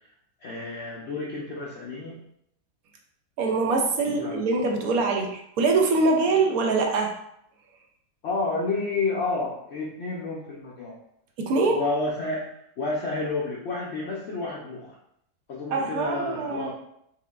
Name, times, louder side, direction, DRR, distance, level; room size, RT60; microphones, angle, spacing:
voice 1, 0.4-2.2 4.0-4.4 8.2-10.9 11.7-12.5 12.8-14.9 15.5-16.7, left 3 dB, 70° left, -5 dB, 0.6 m, -30 dB
voice 2, 3.4-7.1 11.4-11.8 15.7-16.7, right 3 dB, 70° right, 2 dB, 0.9 m, -23 dB
4.6 x 3.4 x 2.4 m, 0.74 s
omnidirectional pair, 1.9 m